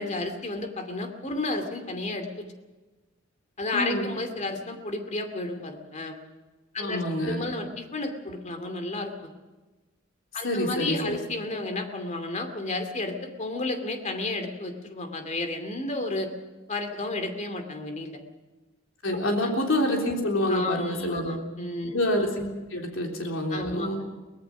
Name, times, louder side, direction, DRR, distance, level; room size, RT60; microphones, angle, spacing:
voice 1, 0.0-2.5 3.6-6.2 6.7-9.3 10.3-16.3 16.7-18.2 19.4-19.5 20.5-22.0 23.5-24.0, left 2 dB, 35° left, 6 dB, 2.5 m, -32 dB
voice 2, 3.7-4.1 6.8-7.5 10.4-11.2 19.0-21.4 21.9-24.0, left 1 dB, 70° left, 1 dB, 3.6 m, -27 dB
23.5 x 18.5 x 6.1 m, 1.2 s
head